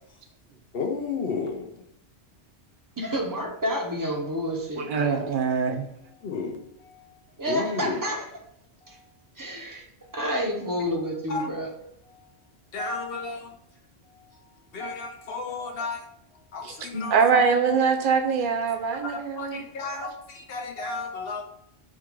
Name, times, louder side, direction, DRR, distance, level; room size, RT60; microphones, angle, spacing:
voice 1, 0.7-1.7 6.2-7.0 7.5-8.0 8.9-9.0 10.0-10.2 11.3-11.5 12.7-13.5 14.7-16.0 16.5-17.6 19.0-21.4, left 4 dB, 65° left, 3 dB, 0.8 m, -33 dB
voice 2, 3.0-5.2 7.4-8.2 8.9-9.0 9.4-9.8 10.1-11.7 16.9-17.0 17.3-17.8, equal, 20° right, 0 dB, 0.7 m, -29 dB
voice 3, 4.9-5.8 16.6-16.8 17.1-19.6, right 6 dB, 60° right, 5 dB, 0.6 m, -23 dB
3.7 x 2.4 x 4.5 m, 0.76 s
omnidirectional pair, 1.1 m